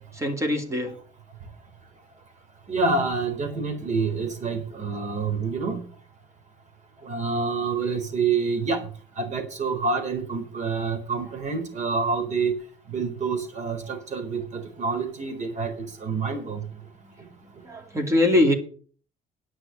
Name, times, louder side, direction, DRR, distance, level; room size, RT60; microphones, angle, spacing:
voice 1, 0.1-1.0 16.3-16.4 17.0-17.1 17.4-18.5, left 1 dB, 15° right, 3 dB, 2.7 m, -23 dB
voice 2, 2.7-5.8 7.0-8.8 9.2-12.5 12.9-15.7 16.0-16.6, right 4 dB, 45° right, 6 dB, 4.1 m, -27 dB
10.0 x 6.3 x 8.6 m, 0.43 s
cardioid pair, 110°, 17 cm